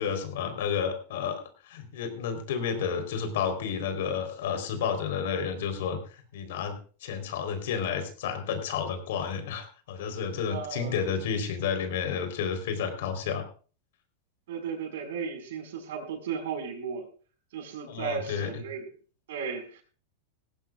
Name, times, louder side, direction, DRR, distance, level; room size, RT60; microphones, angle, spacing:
voice 1, 0.0-6.0 6.3-13.5 17.9-18.6, left 7 dB, 75° left, 8 dB, 3.9 m, -31 dB
voice 2, 10.5-10.9 14.5-17.1 17.5-18.9 19.3-19.8, right 6 dB, 80° right, 5 dB, 5.1 m, -35 dB
18.5 x 16.0 x 2.4 m, 0.38 s
supercardioid pair, 140°, 0 cm